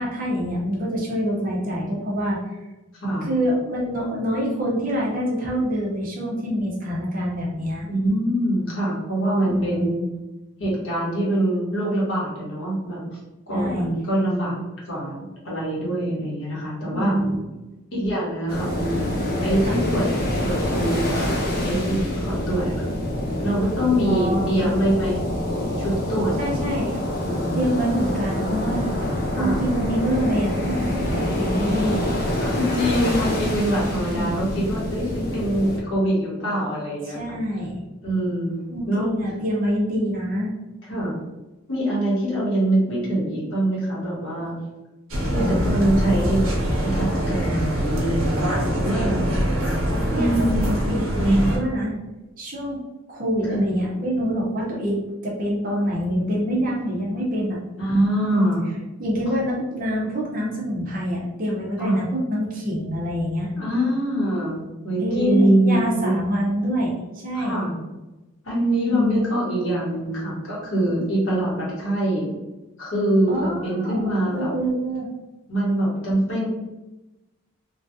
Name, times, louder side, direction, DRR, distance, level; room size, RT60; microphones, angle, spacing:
voice 1, 0.0-2.6 3.2-7.9 9.4-9.9 13.5-13.9 16.9-17.4 19.6-19.9 24.0-24.7 26.4-27.0 27.5-28.8 29.4-32.1 34.1-34.4 37.1-37.8 38.7-40.5 45.4-45.9 50.1-50.3 50.9-51.9 52.4-52.8 53.1-57.6 59.0-63.5 65.0-67.6 68.9-69.2 73.3-75.1, equal, 40° right, -4 dB, 0.8 m, -26 dB
voice 2, 2.9-3.3 7.9-10.0 10.6-13.0 13.5-14.6 14.9-17.2 17.9-20.0 20.4-22.9 23.4-25.2 25.8-27.7 29.4-29.6 32.4-37.4 38.0-39.1 40.9-41.2 41.7-44.6 45.3-46.4 46.8-49.2 50.1-50.8 51.1-51.4 53.5-53.6 57.8-58.7 61.8-62.0 63.6-66.2 67.3-67.8 68.4-72.3 72.8-74.5 75.5-76.5, right 1 dB, 70° left, -6 dB, 1.4 m, -24 dB
sound 1, 18.5-35.8, left 1 dB, 45° left, 0.6 m, -26 dB
sound 2, 45.1-51.6, equal, 75° right, 0.9 m, -23 dB
3.1 x 2.4 x 2.7 m, 1.0 s
head